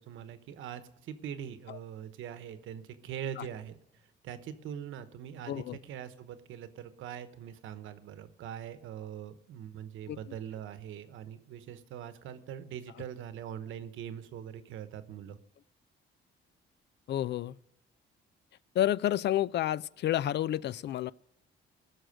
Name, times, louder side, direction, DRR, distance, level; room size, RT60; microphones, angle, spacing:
voice 1, 0.0-3.8 4.2-15.4, right 9 dB, 80° right, 11 dB, 1.0 m, -42 dB
voice 2, 5.5-5.8 10.1-10.2 17.1-17.6 18.8-21.1, left 12 dB, 60° left, 20 dB, 0.4 m, -30 dB
18.0 x 6.4 x 6.4 m, 0.85 s
cardioid pair, 90°, 20 cm